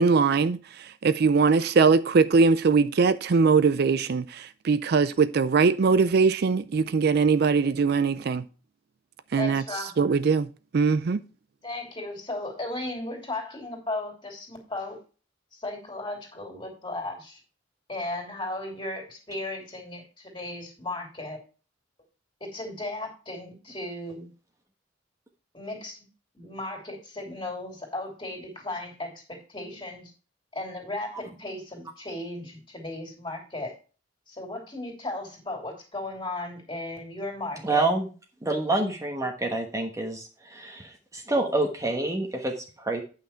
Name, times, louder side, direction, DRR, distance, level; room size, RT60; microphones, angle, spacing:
voice 1, 0.0-8.4 9.3-9.6 10.0-10.5 10.7-11.2, right 5 dB, 55° right, 0.4 m, -21 dB
voice 2, 9.4-10.0 11.6-15.0 15.5-17.4 17.9-21.4 22.4-24.3 25.5-26.0 26.3-30.1 30.5-33.7 34.3-37.8, left 2 dB, 25° left, 2.9 m, -35 dB
voice 3, 37.6-38.1 38.4-43.0, right 2 dB, 15° right, 1.1 m, -27 dB
9.0 x 5.8 x 4.4 m
head